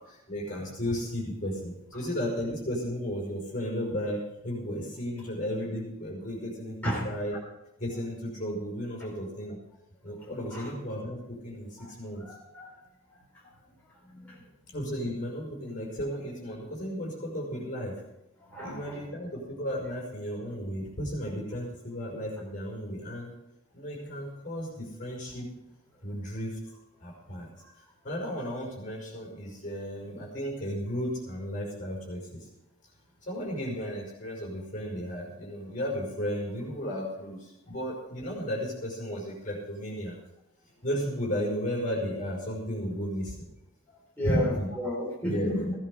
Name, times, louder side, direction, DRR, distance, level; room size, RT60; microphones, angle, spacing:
voice 1, 0.3-7.4 7.8-9.6 10.0-12.2 14.7-18.0 18.6-23.3 23.7-25.5 26.0-26.6 27.0-27.5 28.0-32.5 33.2-40.2 40.8-43.4 44.2-44.7 45.2-45.7, equal, 40° left, -1 dB, 5.3 m, -34 dB
voice 2, 12.2-12.8 13.4-13.5 14.0-14.5 18.5-19.1 27.6-27.7 44.2-45.7, equal, 10° left, -7 dB, 4.3 m, -33 dB
16.5 x 10.5 x 4.9 m, 0.90 s
head